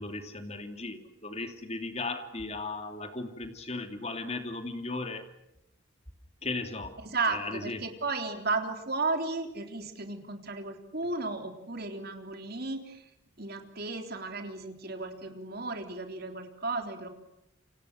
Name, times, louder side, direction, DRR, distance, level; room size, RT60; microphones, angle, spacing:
voice 1, 0.0-5.2 6.4-7.0 7.3-7.8, left 3 dB, 30° left, 7 dB, 2.8 m, -36 dB
voice 2, 7.0-13.0 13.4-17.1, right 3 dB, 45° right, 5 dB, 3.7 m, -34 dB
29.0 x 26.0 x 6.6 m, 0.85 s
head